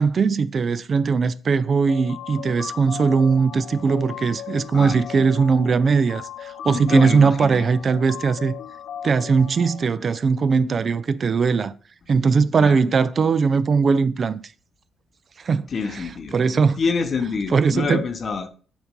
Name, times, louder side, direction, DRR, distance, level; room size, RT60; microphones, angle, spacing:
voice 1, 0.0-8.5 9.0-11.7 12.1-14.4 15.4-16.8 17.5-18.0, right 5 dB, 45° right, 0.3 m, -20 dB
sound 1, 1.9-9.9, left 9 dB, 75° left, 0.4 m, -37 dB
voice 2, 4.7-5.3 6.7-7.6 12.6-12.8 15.7-16.4 16.8-18.5, left 5 dB, 45° left, 0.8 m, -27 dB
7.1 x 2.6 x 5.2 m
cardioid pair, 90°, 0 cm